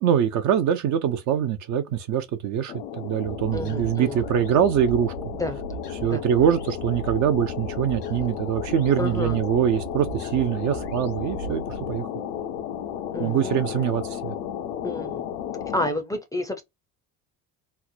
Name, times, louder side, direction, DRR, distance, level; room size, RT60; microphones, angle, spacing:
voice 1, 0.0-5.1 6.0-11.6 11.9-12.1 13.2-14.3, right 9 dB, 40° right, 0.5 m, -23 dB
sound 1, 2.7-15.9, left 9 dB, 70° left, 0.6 m, -34 dB
sound 2, 3.2-12.0, right 3 dB, 90° left, 1.1 m, -38 dB
voice 2, 3.5-4.2 5.4-5.6 6.0-6.2 8.2-8.4 9.0-9.4 13.1-13.6 14.8-15.3 15.7-16.6, left 1 dB, 10° left, 0.5 m, -30 dB
3.1 x 2.0 x 2.3 m
figure-of-eight pair, 60°, 45 cm